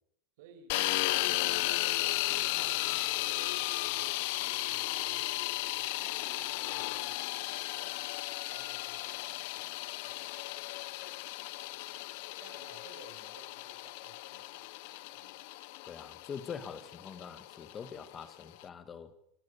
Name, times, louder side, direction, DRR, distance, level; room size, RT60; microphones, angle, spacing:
voice 1, 0.4-8.1 8.5-10.8 11.8-12.0 12.4-14.7 15.1-15.4, right 7 dB, 70° right, 5.9 m, -59 dB
sound 1, 0.7-18.6, left 20 dB, 55° left, 0.9 m, -35 dB
voice 2, 15.9-19.1, left 6 dB, 20° left, 1.9 m, -44 dB
27.0 x 16.0 x 7.1 m
supercardioid pair, 175°, 0 cm